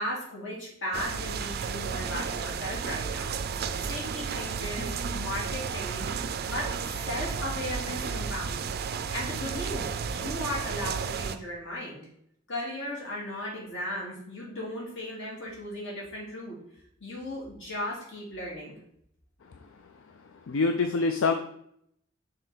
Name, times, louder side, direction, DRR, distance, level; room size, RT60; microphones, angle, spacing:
voice 1, 0.0-3.3 3.9-6.7 7.0-8.6 9.1-12.0 12.5-16.6 17.0-18.7, left 1 dB, 70° left, -4 dB, 2.3 m, -36 dB
sound 1, 0.9-11.4, right 6 dB, 55° right, 0.4 m, -33 dB
voice 2, 20.5-21.3, left 4 dB, 90° left, 6 dB, 0.4 m, -24 dB
6.5 x 3.8 x 4.0 m, 0.70 s
head